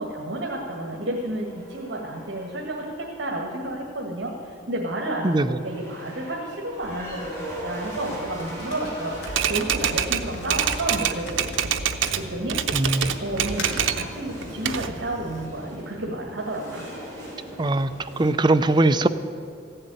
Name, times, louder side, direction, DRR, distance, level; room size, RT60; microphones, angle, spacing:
voice 1, 0.0-7.3 7.6-11.7 12.2-12.6 13.2-16.9, right 1 dB, 65° right, -1 dB, 1.8 m, -31 dB
sound 1, 0.6-2.9 5.5-18.3, equal, 15° left, 4.3 m, -39 dB
voice 2, 5.2-5.6 12.7-13.1 17.6-17.9 18.2-19.1, right 2 dB, 25° right, 10 dB, 0.5 m, -20 dB
sound 2, 8.4-12.7 13.3-13.9, left 1 dB, 65° left, 2.4 m, -39 dB
Typewriter, 9.3-12.2 12.5-14.1 14.4-15.5, right 8 dB, 85° right, 0.7 m, -26 dB
15.0 x 7.8 x 9.1 m, 2.2 s
head